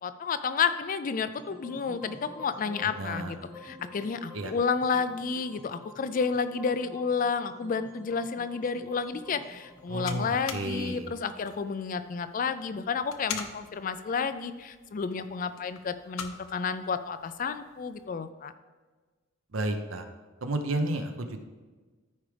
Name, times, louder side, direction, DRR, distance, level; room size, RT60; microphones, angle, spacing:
voice 1, 0.0-18.5, left 5 dB, 40° left, 11 dB, 0.3 m, -31 dB
sound 1, 1.4-11.6, left 2 dB, 10° right, 1.4 m, -49 dB
voice 2, 3.0-3.3 4.3-4.5 9.9-11.1 19.5-20.0 20.4-21.4, right 2 dB, 75° right, 6 dB, 0.8 m, -31 dB
sound 2, 8.8-18.1, left 7 dB, 80° left, 0.7 m, -45 dB
13.5 x 4.8 x 3.4 m, 1.3 s
head